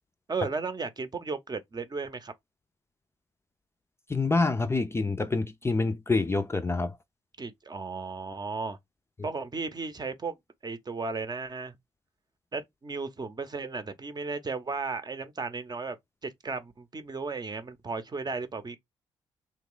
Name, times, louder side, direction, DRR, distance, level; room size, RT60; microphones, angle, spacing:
voice 1, 0.3-2.3 7.4-8.8 9.2-10.4 10.6-11.8 12.5-16.0 16.2-18.8, right 4 dB, 35° right, 0.7 m, -35 dB
voice 2, 4.1-6.9, left 3 dB, 20° left, 0.4 m, -26 dB
3.1 x 2.3 x 3.7 m
hypercardioid pair, 45°, 12 cm